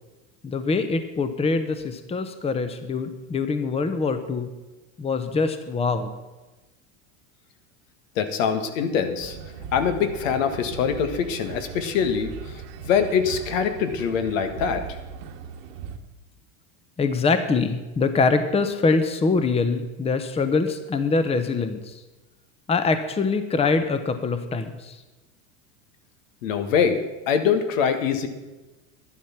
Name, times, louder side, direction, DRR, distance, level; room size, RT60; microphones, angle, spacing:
voice 1, 0.4-4.5 5.0-6.1 17.0-22.0 22.7-25.0, left 4 dB, 15° left, 10 dB, 0.9 m, -24 dB
voice 2, 8.1-9.4 9.7-14.8 26.4-28.3, left 7 dB, 75° left, 8 dB, 1.7 m, -24 dB
sound 1, 9.2-16.0, right 7 dB, 65° right, 1.6 m, -39 dB
11.0 x 11.0 x 5.9 m, 1.1 s
supercardioid pair, 115°, 39 cm